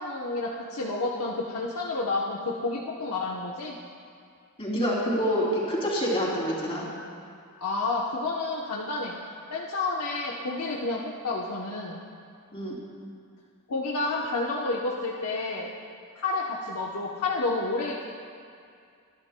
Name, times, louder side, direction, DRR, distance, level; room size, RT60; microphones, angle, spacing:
voice 1, 0.0-3.8 7.6-9.1 9.5-12.0 13.7-15.7 16.1-18.0, left 3 dB, 90° left, -3 dB, 0.9 m, -30 dB
voice 2, 4.6-6.9 12.5-12.8, equal, 25° left, -5 dB, 3.0 m, -27 dB
24.5 x 10.5 x 2.2 m, 2.4 s
head